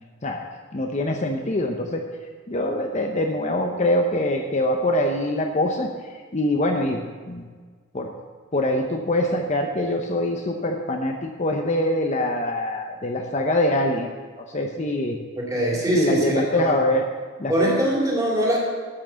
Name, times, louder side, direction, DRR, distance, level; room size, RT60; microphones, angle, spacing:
voice 1, 0.7-2.0 2.5-7.5 7.9-8.1 8.5-14.1 14.4-15.2 15.9-17.1 17.4-17.8, left 1 dB, 35° left, 3 dB, 0.7 m, -24 dB
voice 2, 15.4-16.7 17.5-18.6, right 1 dB, 15° right, -4 dB, 2.6 m, -22 dB
12.0 x 5.9 x 6.9 m, 1.5 s
head